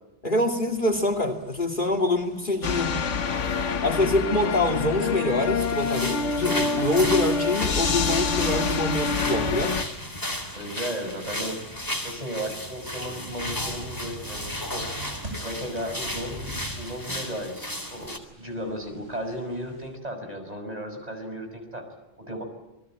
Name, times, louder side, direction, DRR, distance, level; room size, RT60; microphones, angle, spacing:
voice 1, 0.2-3.0 3.8-9.8, left 2 dB, 45° left, 7 dB, 2.7 m, -25 dB
sound 1, 0.7-19.9, right 1 dB, 80° right, 8.3 m, -46 dB
sound 2, 2.6-9.8, left 5 dB, 85° left, 1.5 m, -26 dB
sound 3, 5.6-18.2, left 1 dB, 15° left, 3.6 m, -34 dB
voice 2, 10.5-11.6 12.0-14.9 15.4-21.9 22.2-22.4, equal, 35° right, 4 dB, 6.2 m, -35 dB
28.5 x 21.5 x 9.0 m, 0.94 s
omnidirectional pair, 1.2 m